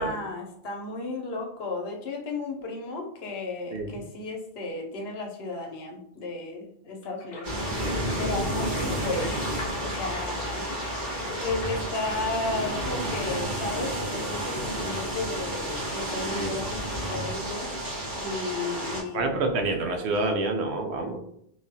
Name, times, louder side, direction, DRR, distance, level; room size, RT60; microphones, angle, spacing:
voice 1, 0.0-7.8 8.2-9.4 9.8-10.7 11.4-16.8 17.1-17.7 18.2-19.3, left 2 dB, 70° left, 2 dB, 0.9 m, -34 dB
voice 2, 3.7-4.0 16.4-16.6 19.1-21.2, right 3 dB, 85° right, 3 dB, 0.9 m, -28 dB
sound 1, 7.0-12.0, left 1 dB, 45° left, 0.7 m, -40 dB
sound 2, 7.4-19.0, equal, 50° right, 1.3 m, -31 dB
3.3 x 2.3 x 2.6 m, 0.70 s
omnidirectional pair, 1.1 m